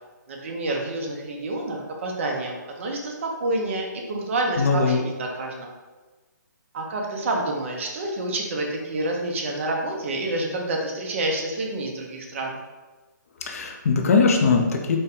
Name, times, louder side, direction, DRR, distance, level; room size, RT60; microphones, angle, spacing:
voice 1, 0.3-5.7 6.7-12.6, right 2 dB, 40° right, 1 dB, 0.6 m, -28 dB
voice 2, 4.6-5.0 13.4-15.0, left 4 dB, 45° left, 3 dB, 0.5 m, -20 dB
4.1 x 2.2 x 3.5 m, 1.2 s
hypercardioid pair, 165°, 10 cm